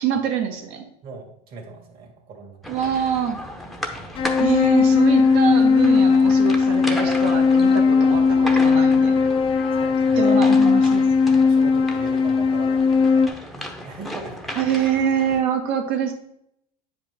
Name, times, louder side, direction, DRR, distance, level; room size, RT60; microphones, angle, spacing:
voice 1, 0.0-0.9 2.7-3.4 4.4-9.2 10.2-11.0 14.5-16.1, right 8 dB, 65° right, 4 dB, 1.6 m, -25 dB
voice 2, 1.0-2.9 3.9-4.2 9.8-10.4 11.4-13.5 13.8-14.5, right 4 dB, 50° right, 1 dB, 2.4 m, -40 dB
sound 1, 2.6-15.4, equal, ahead, 0.9 m, -35 dB
sound 2, 4.1-13.3, left 5 dB, 25° left, 0.7 m, -17 dB
9.1 x 5.1 x 3.6 m, 0.76 s
supercardioid pair, 120°, 20 cm